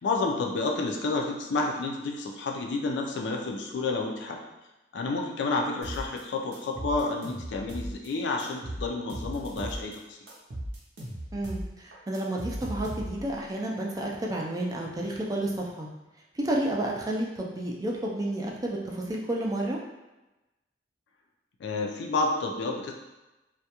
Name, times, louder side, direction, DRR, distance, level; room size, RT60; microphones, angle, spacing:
voice 1, 0.0-4.4 4.9-10.2 21.6-22.9, left 3 dB, 75° left, 1 dB, 0.4 m, -30 dB
sound 1, 5.8-6.2 6.5-8.1 8.4-10.0 10.3-13.4, right 1 dB, 70° right, 0.6 m, -37 dB
voice 2, 11.3-15.9 16.3-19.8, right 1 dB, 20° right, -2 dB, 0.3 m, -31 dB
2.3 x 2.1 x 2.8 m, 1.0 s
head